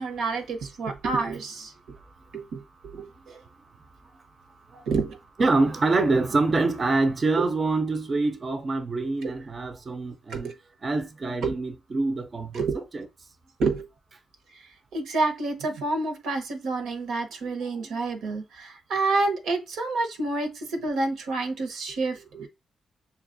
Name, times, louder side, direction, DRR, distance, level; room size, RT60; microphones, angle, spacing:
voice 1, 0.0-1.7 2.3-3.4 4.9-5.2 9.2-9.3 10.3-10.5 11.4-11.5 12.5-12.8 13.6-13.8 14.9-22.5, right 3 dB, 90° right, 0.9 m, -28 dB
voice 2, 2.0-2.4 3.0-3.4 4.7-4.9 5.4-10.5 10.8-13.1 17.4-17.5, right 3 dB, 40° right, 0.5 m, -26 dB
6.6 x 2.3 x 2.5 m
cardioid pair, 75°, 0 cm